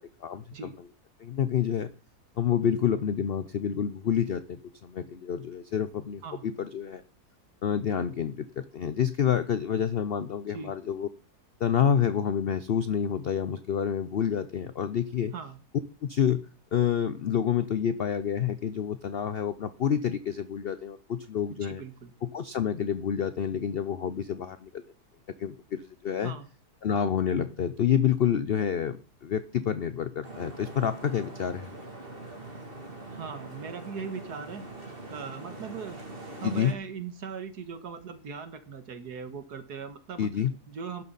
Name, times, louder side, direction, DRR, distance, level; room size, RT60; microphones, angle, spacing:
voice 1, 0.2-0.7 1.2-1.9 2.4-7.0 7.6-11.1 11.6-15.3 16.0-16.4 16.7-21.8 22.2-24.8 25.4-26.3 26.8-31.7 36.4-36.7 40.2-40.5, left 8 dB, 55° left, 13 dB, 0.6 m, -28 dB
voice 2, 21.5-22.1 26.2-26.5 33.1-34.6 34.9-36.0 36.4-40.3 40.7-41.0, right 6 dB, 75° right, 9 dB, 2.0 m, -39 dB
sound 1, 30.2-36.7, right 2 dB, 35° right, 2.8 m, -43 dB
12.5 x 11.0 x 4.1 m, 0.36 s
omnidirectional pair, 1.7 m